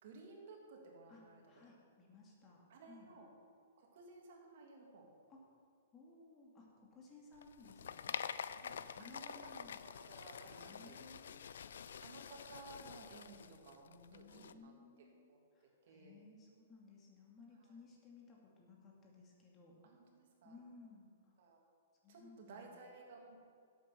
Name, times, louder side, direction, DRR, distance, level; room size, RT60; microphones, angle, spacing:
voice 1, 0.0-1.4 2.7-3.3 3.8-5.1 8.6-9.5 9.8-11.1 12.0-14.7 15.0-15.4 15.8-16.2 19.8-20.6 21.4-21.6 22.1-23.4, right 3 dB, 55° right, 0 dB, 2.9 m, -56 dB
voice 2, 1.1-3.1 5.3-5.6 5.9-8.2 9.0-9.8 10.5-11.5 14.1-19.7 20.4-21.3 22.0-22.7, left 3 dB, 20° left, -2 dB, 2.4 m, -60 dB
sound 1, 7.4-14.5, left 7 dB, 80° left, 0.5 m, -47 dB
11.5 x 8.5 x 6.1 m, 2.3 s
hypercardioid pair, 155°, 0 cm